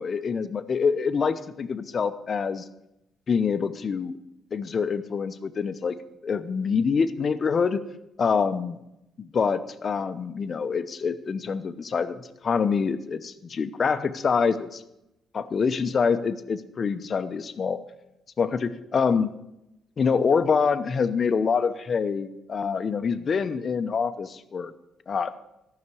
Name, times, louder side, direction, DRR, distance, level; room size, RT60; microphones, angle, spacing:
voice 1, 0.0-2.6 3.3-4.1 4.5-6.0 6.2-7.8 8.2-8.8 9.2-14.8 15.3-17.8 18.4-19.3 20.0-24.7 25.1-25.4, left 5 dB, 45° left, 11 dB, 0.8 m, -25 dB
14.0 x 6.0 x 8.3 m, 0.87 s
cardioid pair, 90°, 0 cm